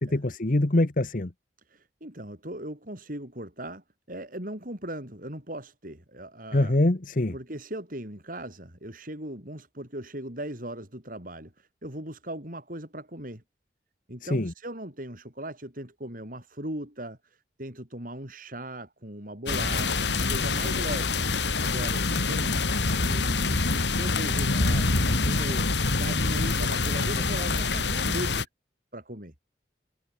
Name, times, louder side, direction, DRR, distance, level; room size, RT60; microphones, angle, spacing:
voice 1, 0.0-1.3 6.5-7.3 14.2-14.5 20.6-20.7, left 1 dB, 50° left, 1.2 m, -24 dB
voice 2, 1.7-6.8 7.3-13.4 14.1-21.2 21.5-28.5 28.9-29.3, right 1 dB, 50° right, 6.7 m, -39 dB
sound 1, 19.5-28.4, left 3 dB, 75° left, 2.5 m, -26 dB
head